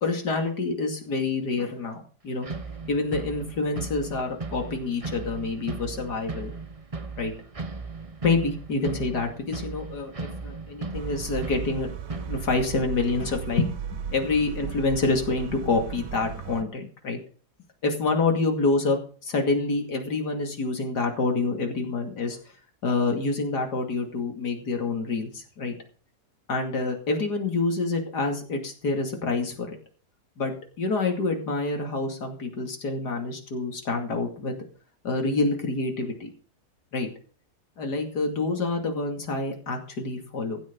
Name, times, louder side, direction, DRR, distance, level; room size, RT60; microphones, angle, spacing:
voice 1, 0.0-2.5 2.9-6.5 7.2-7.3 8.2-11.9 12.3-13.8 14.1-17.2 17.8-22.4 22.8-25.7 26.5-29.8 30.4-34.6 35.0-36.3 36.9-37.1 37.8-40.6, left 3 dB, 85° left, 3 dB, 3.1 m, -27 dB
sound 1, 2.4-12.5, right 3 dB, 25° right, 1.1 m, -37 dB
sound 2, 10.9-16.6, right 9 dB, 50° right, 1.0 m, -36 dB
15.0 x 9.7 x 5.3 m, 0.40 s
omnidirectional pair, 1.7 m